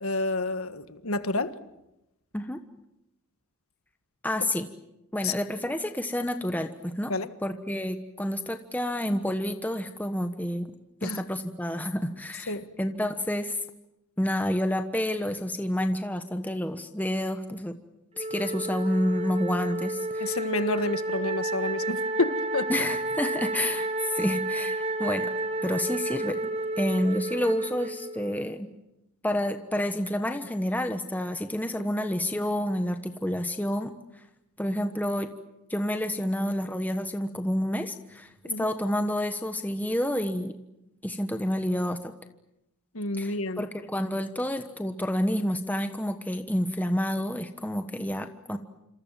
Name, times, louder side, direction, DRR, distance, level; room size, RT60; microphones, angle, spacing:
voice 1, 0.0-1.5 5.2-5.3 7.1-7.3 11.0-11.2 12.5-12.6 20.2-22.7 38.4-38.7 42.9-43.7, left 2 dB, 75° left, 10 dB, 1.6 m, -29 dB
voice 2, 4.2-4.7 5.1-7.1 7.4-10.7 11.0-13.6 14.2-17.7 18.2-20.4 22.7-25.3 25.6-28.7 29.2-33.9 34.6-35.3 35.7-38.3 38.6-40.5 41.0-42.1 43.2-48.6, left 1 dB, 5° left, 7 dB, 1.2 m, -29 dB
Wind instrument woodwind instrument, 18.2-28.5, right 2 dB, 25° right, 1.3 m, -31 dB
27.5 x 27.0 x 7.5 m, 0.89 s
head